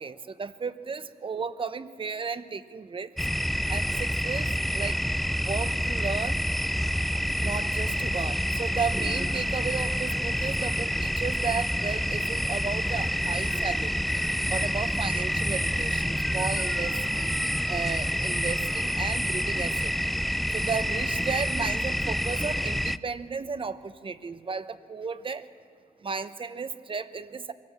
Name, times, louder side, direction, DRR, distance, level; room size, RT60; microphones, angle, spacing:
voice 1, 0.0-3.1 3.7-5.0 5.4-6.4 7.4-14.0 14.5-17.3 17.6-19.9 20.5-25.5 26.0-27.5, right 5 dB, 35° right, 12 dB, 1.0 m, -34 dB
sound 1, 3.2-23.0, equal, ahead, 0.5 m, -28 dB
24.0 x 17.5 x 7.5 m, 2.2 s
cardioid pair, 85°, 15 cm